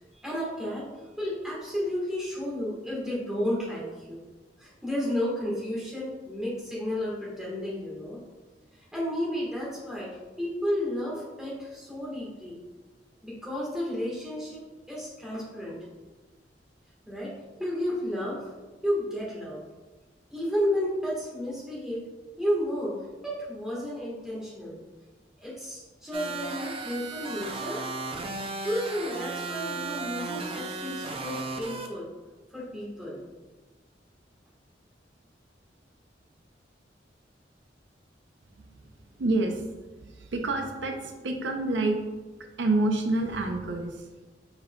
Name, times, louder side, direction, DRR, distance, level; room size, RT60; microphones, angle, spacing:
voice 1, 0.2-0.8 1.2-4.2 4.6-8.2 8.9-12.6 13.2-15.8 17.1-17.3 17.6-18.5 18.8-19.6 20.3-22.1 22.4-24.8 25.4-27.8 28.6-32.1 32.5-33.2, equal, 5° right, -6 dB, 1.4 m, -32 dB
sound 1, 26.1-31.9, right 3 dB, 30° right, 0.5 m, -35 dB
voice 2, 39.2-39.6 40.0-42.0 42.6-44.1, right 2 dB, 80° right, 4 dB, 0.5 m, -27 dB
5.0 x 4.8 x 2.2 m, 1.2 s
head